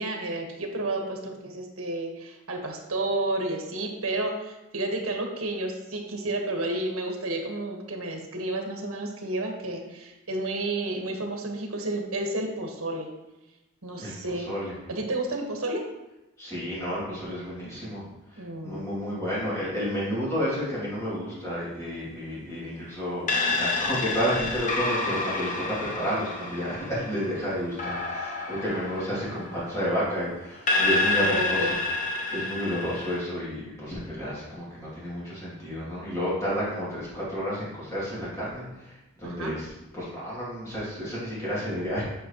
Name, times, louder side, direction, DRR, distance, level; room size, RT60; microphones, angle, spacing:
voice 1, 0.0-13.1 13.8-14.5 14.9-15.9 18.4-18.9 31.2-31.7 39.2-39.5, right 2 dB, 75° right, 2 dB, 1.4 m, -31 dB
voice 2, 14.0-14.7 16.4-18.0 18.6-31.7 32.3-39.7 39.9-42.0, equal, 15° left, -9 dB, 2.6 m, -31 dB
sound 1, 23.3-30.1 30.7-33.2, left 3 dB, 35° left, 0.8 m, -29 dB
8.3 x 6.3 x 3.0 m, 0.98 s
head